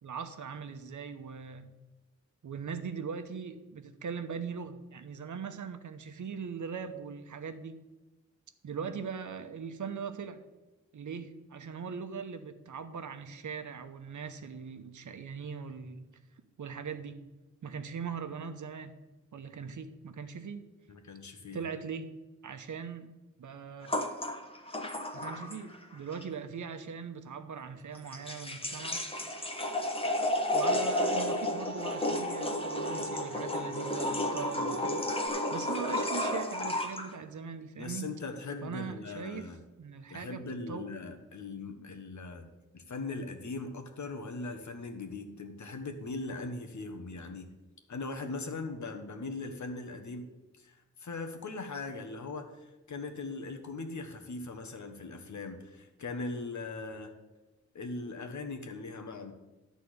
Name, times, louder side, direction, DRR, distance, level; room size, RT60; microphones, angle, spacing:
voice 1, 0.0-1.8 2.4-7.8 8.6-10.4 10.9-16.1 16.6-17.2 17.6-18.9 19.3-20.6 21.5-22.1 22.4-23.1 23.4-23.9 25.1-29.0 30.5-35.1 35.5-38.1 38.6-39.5 39.8-40.9, right 6 dB, 85° right, 9 dB, 0.9 m, -40 dB
voice 2, 20.9-21.6 37.8-39.6 40.1-42.5 42.7-47.5 47.9-50.3 50.6-57.1 57.7-59.3, left 3 dB, 75° left, 5 dB, 1.3 m, -40 dB
sound 1, 23.9-25.8 26.1-26.2 28.0-37.1, left 1 dB, 20° left, 1.1 m, -32 dB
Bowed string instrument, 30.3-35.3, right 3 dB, 40° right, 0.9 m, -44 dB
12.0 x 4.1 x 8.0 m, 1.1 s
wide cardioid pair, 130°, 29 cm